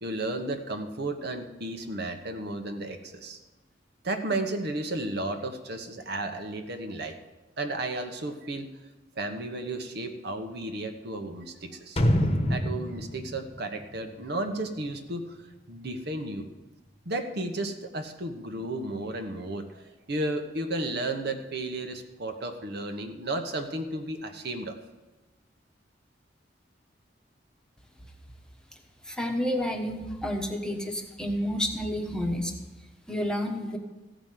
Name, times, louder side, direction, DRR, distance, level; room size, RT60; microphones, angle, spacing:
voice 1, 0.0-3.4 4.0-7.2 7.6-8.7 9.2-12.0 12.5-15.4 15.7-16.5 17.0-24.8, right 2 dB, 60° right, 5 dB, 1.2 m, -33 dB
sound 1, 12.0-14.8 15.1-15.2, equal, 35° left, 1.1 m, -27 dB
voice 2, 29.0-32.5 33.1-33.8, equal, 5° left, 2 dB, 1.2 m, -30 dB
15.0 x 5.2 x 9.2 m, 1.2 s
head